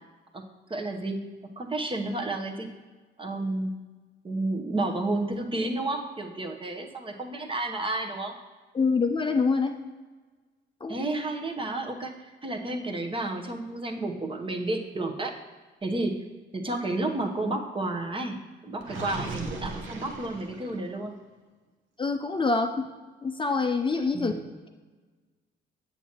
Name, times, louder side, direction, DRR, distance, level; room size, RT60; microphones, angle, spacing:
voice 1, 0.7-2.7 3.2-3.7 4.2-8.3 10.9-15.3 15.8-16.2 16.5-21.1 24.1-24.5, right 2 dB, 25° right, 3 dB, 0.9 m, -31 dB
voice 2, 8.7-9.7 10.8-11.0 22.0-22.7 23.2-24.3, left 4 dB, 25° left, 4 dB, 0.5 m, -25 dB
Gurgling, 18.8-21.0, right 3 dB, 80° right, 1.0 m, -37 dB
8.0 x 7.2 x 2.9 m, 1.3 s
cardioid pair, 90°, 20 cm